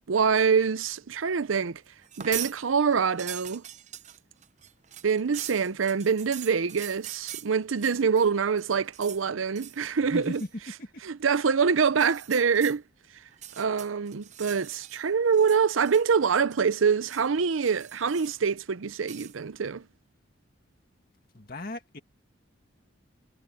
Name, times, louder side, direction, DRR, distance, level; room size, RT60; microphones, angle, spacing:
voice 1, 0.1-1.8 2.2-3.6 5.0-10.4 11.0-12.8 13.6-19.8, right 6 dB, 90° right, 0.6 m, -25 dB
sound 1, 2.0-2.6 2.9-8.3 8.6-9.2 9.5-9.9 10.2-10.5 11.9-12.8 13.3-15.0 15.3-16.2 16.5-17.3 17.6-18.5 19.0-19.4, right 11 dB, 35° right, 0.7 m, -42 dB
voice 2, 10.0-10.9 21.3-22.0, left 1 dB, 50° left, 2.1 m, -37 dB
head